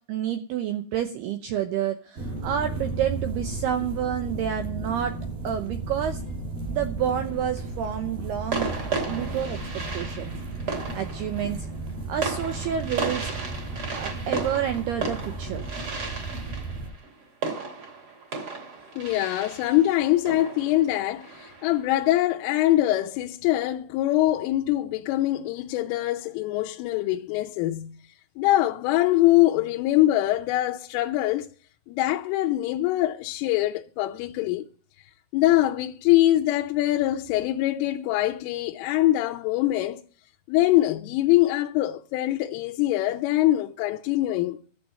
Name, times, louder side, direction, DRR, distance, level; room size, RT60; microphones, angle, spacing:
voice 1, 0.1-5.2 5.4-6.2 6.7-8.7 9.1-10.3 10.9-11.7 12.1-13.3 13.9-15.6, right 9 dB, 80° right, 2.4 m, -29 dB
sound 1, 2.2-16.9, right 2 dB, 50° right, 6.0 m, -34 dB
sound 2, 7.2-7.6 8.5-21.9, right 4 dB, 30° right, 3.1 m, -34 dB
voice 2, 19.0-27.9 28.4-31.5 31.9-34.7 35.3-40.0 40.5-44.6, left 15 dB, 85° left, 3.2 m, -23 dB
12.0 x 7.7 x 9.0 m
omnidirectional pair, 5.8 m